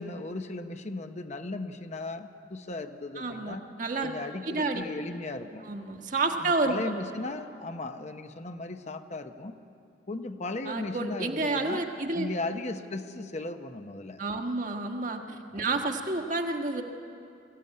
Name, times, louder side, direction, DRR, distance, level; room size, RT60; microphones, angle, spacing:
voice 1, 0.0-3.6 4.0-5.7 6.4-9.6 10.1-11.9 12.1-14.2 15.5-15.7, left 2 dB, 40° left, 7 dB, 0.9 m, -36 dB
voice 2, 3.2-4.1 4.4-4.8 5.6-6.8 10.6-12.3 14.2-16.8, right 3 dB, 45° right, 4 dB, 1.6 m, -30 dB
22.5 x 15.0 x 9.6 m, 2.7 s
head